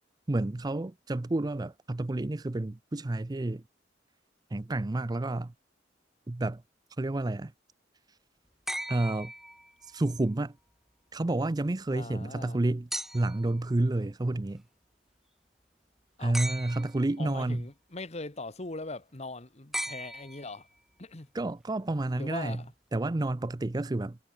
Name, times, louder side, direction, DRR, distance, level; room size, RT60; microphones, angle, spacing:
voice 1, 0.3-3.6 4.5-5.5 6.3-6.6 7.0-7.5 8.9-9.3 9.9-10.5 11.1-12.9 13.1-14.6 16.2-17.6 21.3-22.6 22.9-24.2, right 2 dB, 20° right, 0.5 m, -30 dB
sound 1, 8.7-10.0 12.9-13.5 16.3-17.1 19.7-20.8 22.4-22.5, right 1 dB, ahead, 0.8 m, -38 dB
voice 2, 11.9-12.6 16.2-16.4 17.2-20.7 21.0-21.3 22.2-22.7, left 2 dB, 40° left, 1.6 m, -40 dB
head